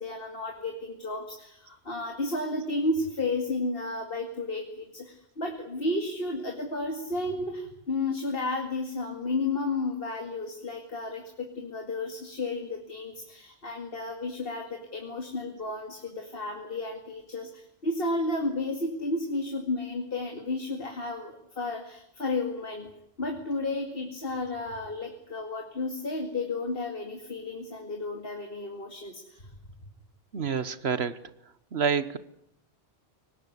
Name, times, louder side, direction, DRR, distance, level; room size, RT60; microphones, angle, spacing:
voice 1, 0.0-22.9 23.2-29.5, left 2 dB, 60° left, 4 dB, 2.6 m, -32 dB
voice 2, 30.3-31.2 31.7-32.2, right 6 dB, 70° right, 14 dB, 1.4 m, -27 dB
23.5 x 19.0 x 9.7 m, 0.76 s
omnidirectional pair, 1.1 m